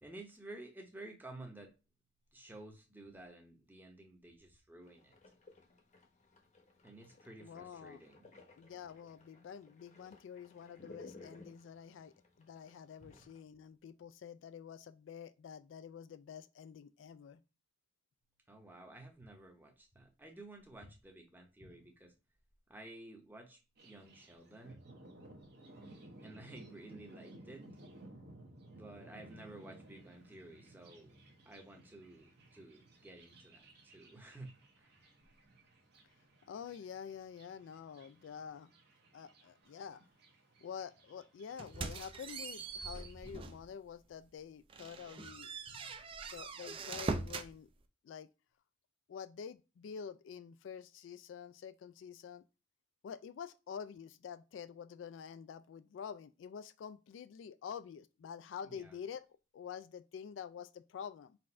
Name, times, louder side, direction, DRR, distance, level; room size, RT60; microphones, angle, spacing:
voice 1, 0.0-1.7 2.3-5.1 6.8-8.3 13.0-13.2 18.5-22.1 22.7-24.8 26.2-27.6 28.7-31.1 31.5-34.5 34.8-34.9 45.7-45.9 58.7-59.0, right 2 dB, 10° right, 0.7 m, -53 dB
sound 1, 4.8-13.4, left 3 dB, 40° left, 0.8 m, -59 dB
voice 2, 7.4-8.0 8.6-17.4 36.5-38.7 39.1-40.0 40.6-45.5 46.3-47.7 48.0-48.3 49.1-52.4 53.0-59.3 59.5-61.4, left 7 dB, 75° left, 0.3 m, -48 dB
Thunder, 23.8-43.3, right 1 dB, 55° right, 0.9 m, -58 dB
sound 2, 41.6-43.7 44.1-44.3 44.7-47.5, right 3 dB, 30° right, 0.4 m, -42 dB
4.1 x 2.5 x 4.2 m
head